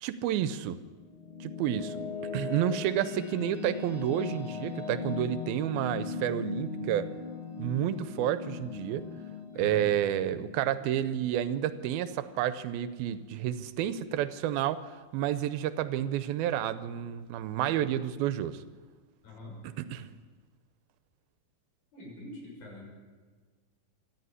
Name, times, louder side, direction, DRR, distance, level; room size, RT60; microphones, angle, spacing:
voice 1, 0.0-0.8 1.4-2.0 2.3-7.1 7.6-9.0 9.6-18.6 19.6-20.1, right 11 dB, 90° right, 14 dB, 2.7 m, -30 dB
sound 1, 0.9-12.1, left 5 dB, 40° left, 3.1 m, -39 dB
voice 2, 9.5-9.9 19.2-19.6 21.9-22.9, left 1 dB, 80° left, -1 dB, 7.9 m, -44 dB
26.0 x 12.0 x 9.7 m, 1.4 s
omnidirectional pair, 4.2 m